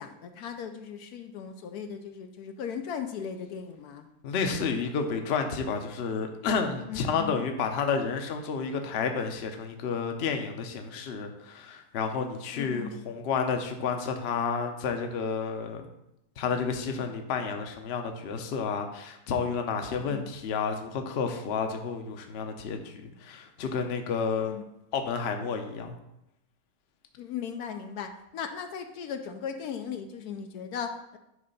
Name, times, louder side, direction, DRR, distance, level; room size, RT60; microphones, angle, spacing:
voice 1, 0.0-4.1 6.9-7.4 12.5-13.0 20.1-20.3 24.5-24.6 27.2-31.2, left 7 dB, 75° left, 6 dB, 1.1 m, -37 dB
voice 2, 4.2-15.9 16.4-24.5 24.9-26.0, left 5 dB, 50° left, 5 dB, 0.8 m, -30 dB
9.5 x 3.3 x 5.3 m, 0.84 s
omnidirectional pair, 1.7 m